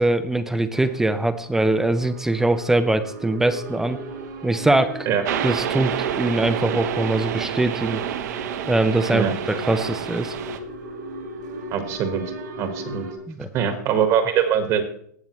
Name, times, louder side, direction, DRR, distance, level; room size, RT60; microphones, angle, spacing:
voice 1, 0.0-4.0 4.4-5.1 5.4-8.0 8.7-10.3 13.3-13.5, right 2 dB, 5° right, 10 dB, 0.5 m, -22 dB
sound 1, 0.7-13.1, right 2 dB, 80° right, 3.6 m, -38 dB
sound 2, 5.2-10.6, right 9 dB, 65° right, 1.0 m, -28 dB
voice 2, 11.7-12.2 12.6-13.0 13.5-14.8, right 8 dB, 30° right, 7 dB, 1.4 m, -22 dB
18.0 x 7.1 x 3.1 m, 0.64 s
supercardioid pair, 150°, 10 cm